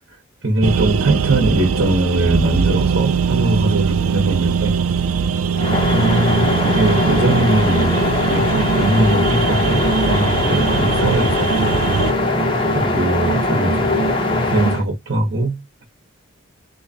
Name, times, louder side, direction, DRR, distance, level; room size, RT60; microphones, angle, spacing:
voice 1, 0.4-4.7 5.9-11.8 12.7-14.1 14.5-15.8, right 2 dB, 55° right, 1.0 m, -21 dB
sound 1, 0.6-12.1, right 6 dB, 85° right, 0.4 m, -21 dB
sound 2, 5.5-14.8, left 1 dB, 25° left, 0.8 m, -20 dB
3.5 x 2.9 x 2.7 m
head